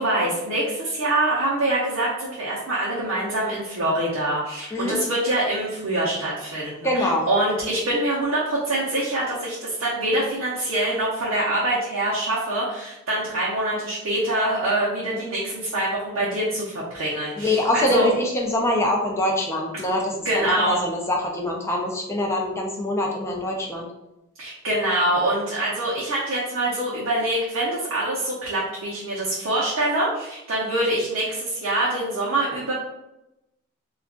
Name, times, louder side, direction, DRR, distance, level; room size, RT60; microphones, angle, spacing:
voice 1, 0.0-18.1 20.2-20.8 24.4-32.7, right 1 dB, 60° right, -7 dB, 0.7 m, -25 dB
voice 2, 6.8-7.3 17.4-23.9, left 1 dB, 10° left, -1 dB, 0.4 m, -24 dB
2.4 x 2.3 x 3.6 m, 0.90 s
head